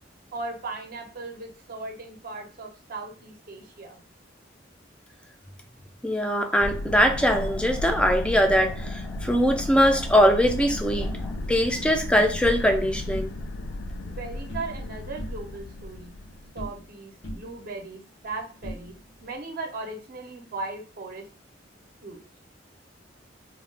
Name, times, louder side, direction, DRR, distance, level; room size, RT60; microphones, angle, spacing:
voice 1, 0.3-4.0 11.7-11.8 14.0-16.2 16.5-18.9 19.2-21.3 22.0-22.2, right 3 dB, 55° right, 3 dB, 0.6 m, -37 dB
voice 2, 6.0-13.3, equal, 5° left, 4 dB, 0.3 m, -22 dB
sound 1, 6.6-16.5, left 1 dB, 85° left, 0.4 m, -34 dB
sound 2, 11.0-12.6 13.0-13.7 13.9-14.9 15.2-17.0 17.2-19.3, equal, 65° left, 0.7 m, -42 dB
2.4 x 2.2 x 3.2 m, 0.38 s
head